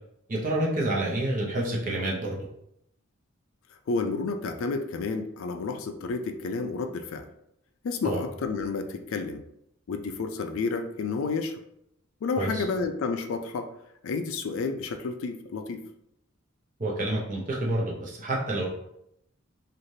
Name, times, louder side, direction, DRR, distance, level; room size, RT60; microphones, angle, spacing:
voice 1, 0.3-2.4 8.0-8.2 12.4-12.6 16.8-18.7, right 1 dB, 40° right, -3 dB, 0.7 m, -28 dB
voice 2, 3.9-7.3 7.8-9.4 9.9-11.6 12.2-13.7 14.0-15.8, left 4 dB, 75° left, 8 dB, 0.3 m, -30 dB
3.1 x 2.4 x 2.7 m, 0.78 s
head